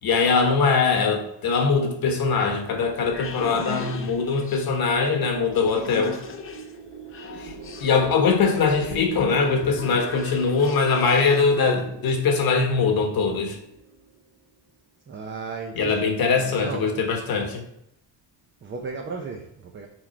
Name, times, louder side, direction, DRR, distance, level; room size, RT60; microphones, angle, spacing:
voice 1, 0.0-6.2 7.4-7.5 7.8-13.6 15.7-17.6, left 5 dB, 55° left, 3 dB, 1.3 m, -22 dB
sound 1, 3.0-11.6, left 6 dB, 30° left, 0.5 m, -39 dB
sound 2, 6.1-14.2, right 6 dB, 65° right, 0.9 m, -40 dB
voice 2, 15.1-17.1 18.6-19.9, right 4 dB, 25° right, 2 dB, 0.5 m, -35 dB
6.1 x 4.8 x 4.3 m, 0.79 s
cardioid pair, 175°, 44 cm